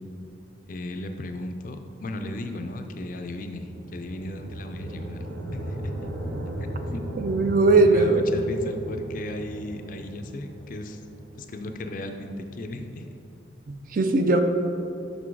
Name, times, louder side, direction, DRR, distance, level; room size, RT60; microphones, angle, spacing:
voice 1, 0.7-5.2 5.5-5.9 6.6-7.0 7.8-11.0 11.4-13.1, left 1 dB, 45° left, 6 dB, 0.4 m, -36 dB
sound 1, 2.9-12.8, equal, 70° right, 1.4 m, -37 dB
voice 2, 7.2-8.2 13.7-14.4, right 3 dB, 45° right, 6 dB, 0.4 m, -19 dB
6.0 x 5.4 x 4.7 m, 2.8 s
head